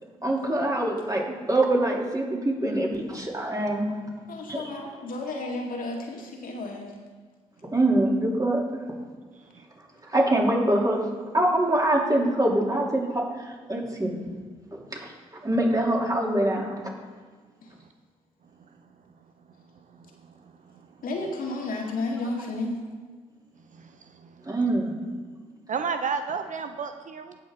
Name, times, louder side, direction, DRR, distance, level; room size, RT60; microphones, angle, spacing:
voice 1, 0.2-4.0 4.5-4.7 7.7-8.6 10.1-11.1 11.3-14.1 14.7-15.1 15.4-16.8 24.4-25.0, right 1 dB, 25° right, -2 dB, 3.2 m, -24 dB
voice 2, 4.3-6.9 17.6-17.7 21.0-22.8, left 2 dB, 60° left, 0 dB, 2.0 m, -32 dB
voice 3, 19.9-20.3 20.7-20.8 23.7-24.3 25.7-27.4, right 5 dB, 50° right, 8 dB, 0.7 m, -32 dB
17.0 x 6.0 x 3.8 m, 1.5 s
hypercardioid pair, 40°, 16 cm